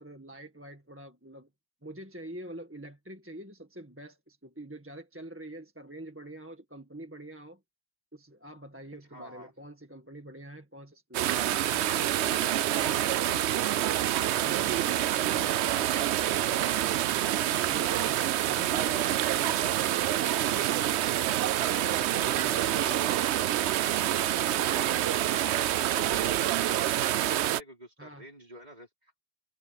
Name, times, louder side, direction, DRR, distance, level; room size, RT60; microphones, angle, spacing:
voice 1, 0.0-1.5 1.8-7.6 8.1-13.7 14.3-21.4 28.0-28.3, right 1 dB, 10° right, 1.8 m, -45 dB
voice 2, 9.1-9.5 20.0-20.8 23.8-29.2, equal, 35° right, 5.2 m, -48 dB
sound 1, 11.1-27.6, right 12 dB, 75° right, 0.8 m, -27 dB
omnidirectional pair, 1.2 m